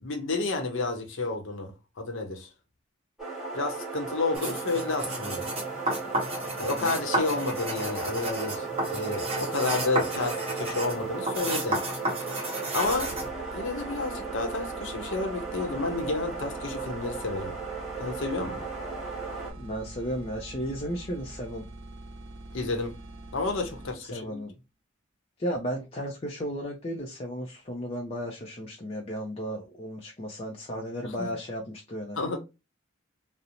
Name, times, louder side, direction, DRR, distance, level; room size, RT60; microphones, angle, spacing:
voice 1, 0.0-2.5 3.5-5.5 6.6-11.8 12.7-13.1 13.5-17.5 18.0-18.7 22.5-23.0 23.3-24.4 31.0-31.3 32.2-32.4, left 3 dB, 65° left, 0.7 m, -31 dB
sound 1, 3.2-19.5, right 4 dB, ahead, 0.7 m, -36 dB
sound 2, 4.3-13.3, right 1 dB, 30° right, 0.9 m, -32 dB
voice 2, 6.6-7.0 19.6-21.7 24.0-24.5 25.4-32.2, equal, 30° left, 0.4 m, -34 dB
sound 3, 12.8-24.2, right 1 dB, 75° right, 0.6 m, -44 dB
2.5 x 2.0 x 2.7 m
head